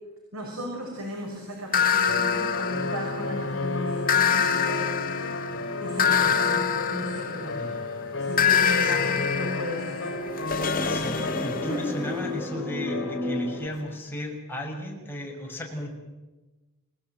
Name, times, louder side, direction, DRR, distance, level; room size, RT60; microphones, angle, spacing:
voice 1, 0.3-5.2 5.8-7.6 8.2-10.2 11.7-11.8, equal, 85° right, 0 dB, 6.2 m, -35 dB
sound 1, 1.7-3.4 4.1-7.8 8.4-12.1, left 8 dB, 40° left, 2.0 m, -25 dB
sound 2, 2.1-14.0, left 2 dB, 65° left, 3.2 m, -33 dB
voice 2, 7.6-7.9 8.8-9.2 10.8-16.0, equal, 10° left, 0 dB, 6.3 m, -36 dB
sound 3, 9.7-13.7, left 2 dB, 10° right, 1.5 m, -34 dB
29.0 x 18.0 x 9.2 m, 1.2 s
head